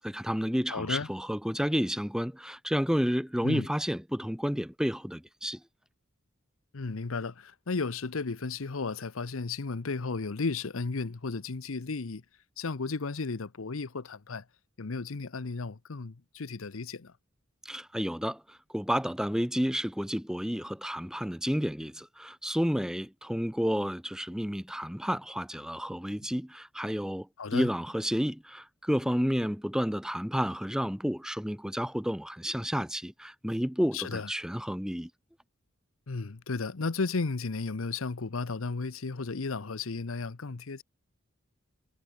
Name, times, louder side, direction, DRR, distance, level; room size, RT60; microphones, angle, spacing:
voice 1, 0.0-5.6 17.7-18.4 18.7-27.3 27.5-35.1, equal, 5° right, 1.8 m, -31 dB
voice 2, 0.7-1.1 3.4-3.7 6.7-12.2 12.6-14.4 14.8-17.1 27.4-27.7 33.9-34.3 36.1-40.8, left 4 dB, 85° left, 0.8 m, -34 dB
head